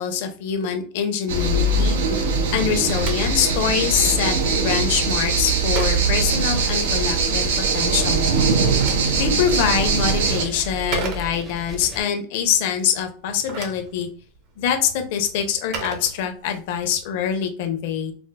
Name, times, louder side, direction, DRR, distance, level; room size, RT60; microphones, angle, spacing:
voice 1, 0.0-2.0 2.5-7.5 7.7-8.3 9.2-14.1 14.6-18.1, left 8 dB, 60° left, 6 dB, 0.7 m, -24 dB
sound 1, 1.3-10.4, right 4 dB, 85° right, 0.7 m, -21 dB
Telephone, 2.6-7.1 8.3-11.7 13.2-16.8, right 4 dB, 45° right, 0.8 m, -36 dB
sound 2, 4.6-12.0, equal, 10° right, 0.6 m, -34 dB
4.3 x 2.1 x 2.2 m, 0.41 s
supercardioid pair, 145°, 0 cm